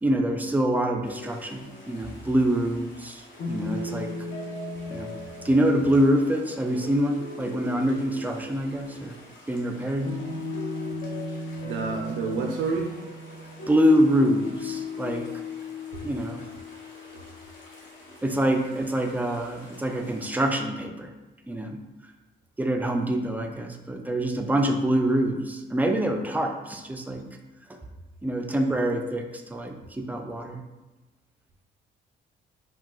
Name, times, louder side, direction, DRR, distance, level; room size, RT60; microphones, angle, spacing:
voice 1, 0.0-4.1 4.9-5.1 5.4-9.2 9.5-10.2 13.7-15.3 16.0-16.4 18.2-21.1 21.5-21.8 22.6-27.3 27.7-27.8 28.2-30.6, equal, 10° right, 4 dB, 0.3 m, -25 dB
sound 1, 1.0-20.4, left 2 dB, 70° left, 0.9 m, -38 dB
voice 2, 11.6-12.9 15.9-16.1, right 4 dB, 80° right, 1 dB, 0.4 m, -28 dB
3.7 x 2.2 x 2.3 m, 1.1 s
cardioid pair, 90°, 20 cm